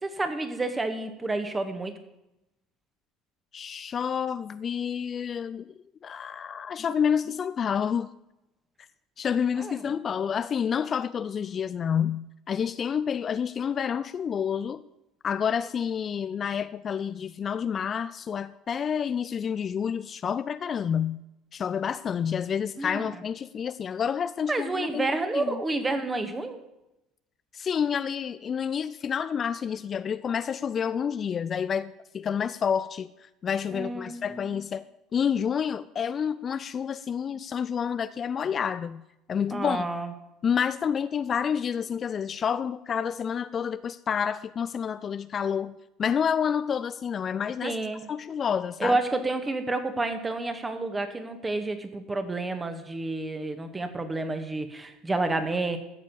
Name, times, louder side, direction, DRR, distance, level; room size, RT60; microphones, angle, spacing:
voice 1, 0.0-2.0 9.6-9.8 22.8-23.1 24.5-26.6 33.7-34.6 39.5-40.1 47.6-48.1 48.8-55.8, right 2 dB, 20° right, 7 dB, 1.9 m, -30 dB
voice 2, 3.5-5.7 6.0-8.1 9.2-14.8 15.2-21.2 21.5-25.1 25.3-25.6 27.5-34.8 35.1-39.0 39.3-39.8 40.4-47.8 48.1-49.0, left 7 dB, 35° left, 14 dB, 0.4 m, -29 dB
14.0 x 7.4 x 7.1 m, 0.90 s
figure-of-eight pair, 60°, 0 cm